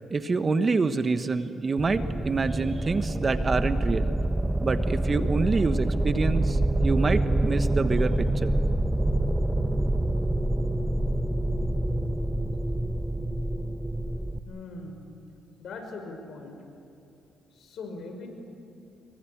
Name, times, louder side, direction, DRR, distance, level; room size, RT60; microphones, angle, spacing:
voice 1, 0.1-4.1 4.6-8.5, right 4 dB, 35° right, 10 dB, 1.3 m, -27 dB
sound 1, 1.8-14.4, right 1 dB, 10° right, 1.1 m, -26 dB
voice 2, 14.5-15.1 15.6-16.6 17.5-18.3, left 3 dB, 65° left, 4 dB, 5.7 m, -40 dB
26.5 x 23.0 x 8.7 m, 2.8 s
cardioid pair, 90°, 0 cm